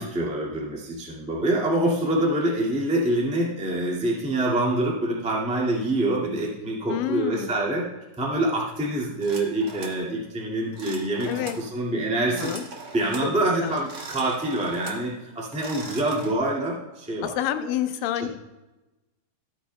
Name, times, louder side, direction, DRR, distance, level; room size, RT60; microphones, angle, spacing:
voice 1, 0.0-7.8 8.2-12.5 12.9-17.3 18.1-18.3, right 1 dB, 5° right, -4 dB, 1.0 m, -26 dB
voice 2, 6.9-7.5 11.3-11.6 12.2-12.6 13.2-13.3 13.6-13.7 17.2-18.3, left 11 dB, 85° left, 10 dB, 2.3 m, -28 dB
sound 1, 9.2-10.0 10.7-11.6 12.2-13.3 13.7-15.1 15.4-16.3, right 3 dB, 80° right, 0.8 m, -40 dB
14.5 x 8.6 x 2.2 m, 1.1 s
omnidirectional pair, 3.8 m